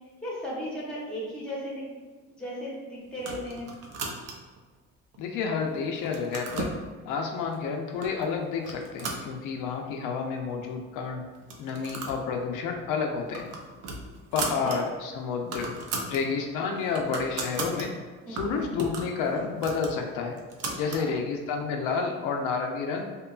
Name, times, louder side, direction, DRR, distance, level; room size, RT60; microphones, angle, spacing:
voice 1, 0.2-1.8 2.2-3.7 14.4-14.8 18.3-18.6 20.6-21.2, equal, 5° left, -6 dB, 0.8 m, -36 dB
sound 1, 3.2-4.6 5.1-5.6 5.9-6.8 7.5-7.6 8.0-8.3 8.6-9.9 10.2-10.3 10.5-10.6 11.4-12.2 12.5-12.7 13.1-14.8 15.1-15.2 15.4-16.2 16.6-17.9 18.4-21.1, right 3 dB, 55° right, 0.5 m, -36 dB
voice 2, 5.2-6.7 7.1-11.2 11.6-13.5 14.3-15.7 16.1-17.9 18.3-20.4 20.8-23.1, left 5 dB, 80° left, 2 dB, 0.5 m, -30 dB
2.8 x 2.2 x 2.3 m, 1.4 s
cardioid pair, 125°, 31 cm